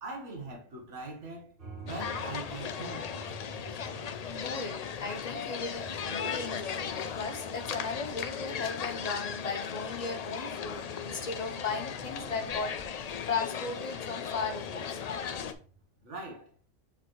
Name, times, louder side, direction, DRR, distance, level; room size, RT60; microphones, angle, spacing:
voice 1, 0.0-1.5 1.8-3.1 16.0-16.5, right 2 dB, 70° right, 1.6 m, -41 dB
sound 1, 1.6-15.8, right 4 dB, 45° right, 2.2 m, -51 dB
sound 2, 1.9-15.5, left 7 dB, 75° left, 0.3 m, -37 dB
voice 2, 4.3-12.8 13.3-14.9, left 4 dB, 40° left, 0.9 m, -37 dB
7.4 x 4.1 x 3.1 m
omnidirectional pair, 1.3 m